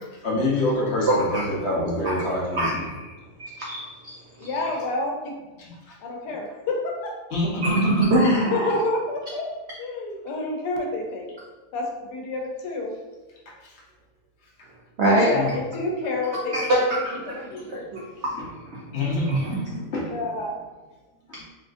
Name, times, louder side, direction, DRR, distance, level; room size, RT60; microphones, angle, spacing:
voice 1, 0.2-2.9 5.6-5.7 7.3-7.8 15.3-15.5 18.9-20.2 21.4-21.5, left 2 dB, 55° left, -4 dB, 0.8 m, -26 dB
voice 2, 1.1-1.4 2.0-2.2 2.5-3.1 3.4-3.8 4.4-4.5 7.6-8.7 15.0-15.3 16.5-18.0 18.3-18.8 19.2-19.8, right 1 dB, 85° right, -4 dB, 0.6 m, -24 dB
voice 3, 4.4-5.3 6.0-7.1 8.5-9.5 9.8-11.3 11.7-12.9 15.0-17.8 20.1-20.6, left 2 dB, 85° left, 1 dB, 1.2 m, -29 dB
3.7 x 2.4 x 2.5 m, 1.2 s
omnidirectional pair, 1.8 m